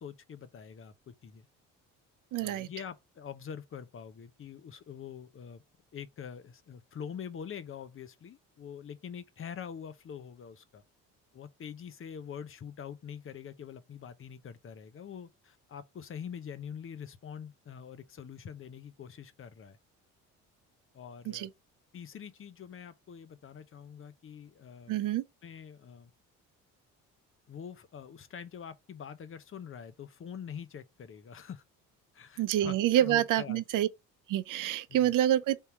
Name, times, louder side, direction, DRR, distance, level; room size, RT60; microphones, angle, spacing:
voice 1, 0.0-1.5 2.4-5.6 5.9-10.8 11.3-19.8 20.9-21.5 21.9-25.0 25.4-26.1 27.5-31.6 32.1-33.6 34.9-35.1, left 7 dB, 35° left, 0.7 m, -45 dB
voice 2, 2.3-2.7 21.3-21.5 24.9-25.2 32.4-33.9 34.3-35.6, right 12 dB, 60° right, 0.6 m, -27 dB
3.6 x 2.8 x 4.7 m
supercardioid pair, 75°, 35 cm